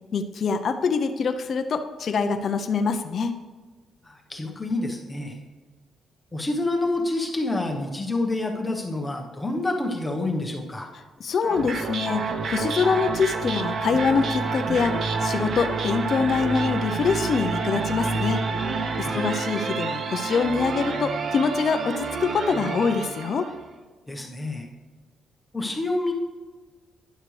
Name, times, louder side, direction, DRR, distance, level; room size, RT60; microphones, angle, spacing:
voice 1, 0.1-3.3 11.2-18.4 19.0-23.5, left 5 dB, 40° left, 6 dB, 0.6 m, -24 dB
voice 2, 4.0-5.4 6.3-10.9 19.0-19.3 24.1-24.7 25.5-26.1, left 2 dB, 10° left, 1 dB, 1.1 m, -28 dB
sound 1, 11.4-23.6, right 4 dB, 40° right, 0.7 m, -28 dB
12.0 x 10.0 x 3.2 m, 1.4 s
cardioid pair, 170°, 0 cm